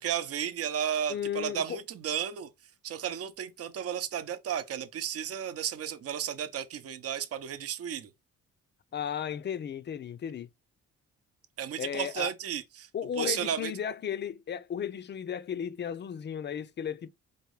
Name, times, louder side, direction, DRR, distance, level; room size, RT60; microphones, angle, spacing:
voice 1, 0.0-2.5 2.8-8.1 11.6-12.9 13.2-13.7, right 9 dB, 50° right, 0.7 m, -33 dB
voice 2, 1.1-1.8 8.9-10.5 11.8-12.3 12.9-17.1, left 8 dB, 35° left, 0.5 m, -34 dB
4.5 x 2.6 x 3.2 m
cardioid pair, 90°, 30 cm